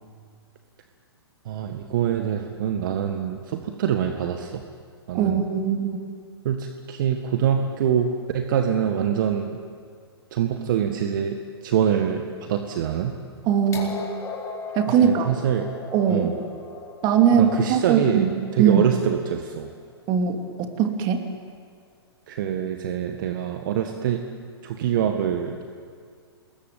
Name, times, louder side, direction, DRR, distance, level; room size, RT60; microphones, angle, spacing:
voice 1, 1.5-4.6 5.1-5.4 6.5-9.6 10.3-11.4 11.6-13.1 15.0-15.7 16.1-16.3 17.3-18.3 18.5-19.7 22.3-24.2 24.6-25.6, right 9 dB, 50° right, 5 dB, 1.8 m, -25 dB
voice 2, 5.1-6.0 13.5-14.0 14.7-15.3 15.9-16.3 17.0-18.9 20.1-21.3, right 8 dB, 30° right, 5 dB, 2.8 m, -21 dB
sound 1, 13.7-19.6 20.7-20.8, left 5 dB, 20° left, 4.3 m, -37 dB
27.5 x 21.0 x 9.3 m, 2.1 s
figure-of-eight pair, 115°, 14 cm